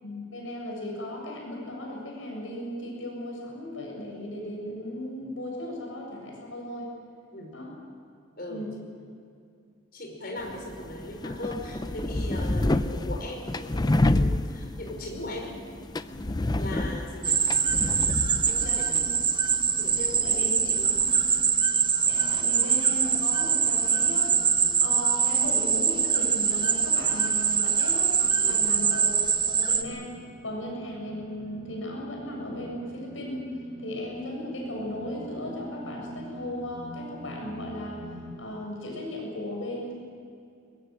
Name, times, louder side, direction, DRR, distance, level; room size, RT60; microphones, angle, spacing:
voice 1, 0.0-6.9 7.5-7.7 8.5-8.7 16.7-16.9 18.6-19.2 20.2-20.5 21.0-21.1 22.0-24.4 24.8-28.2 28.5-30.2 30.4-33.4 33.8-38.1 38.4-39.9, left 1 dB, 75° left, -1 dB, 7.5 m, -36 dB
voice 2, 8.4-8.7 9.9-15.6 16.5-17.4 18.5-19.1 19.7-21.0 28.4-28.6, left 1 dB, 50° left, 1 dB, 5.5 m, -39 dB
sound 1, 10.4-21.4, left 1 dB, 20° left, 0.5 m, -30 dB
sound 2, 17.2-29.8, right 6 dB, 25° right, 1.2 m, -24 dB
sound 3, 19.5-38.4, right 1 dB, 75° right, 7.9 m, -44 dB
23.0 x 21.0 x 7.6 m, 2.4 s
head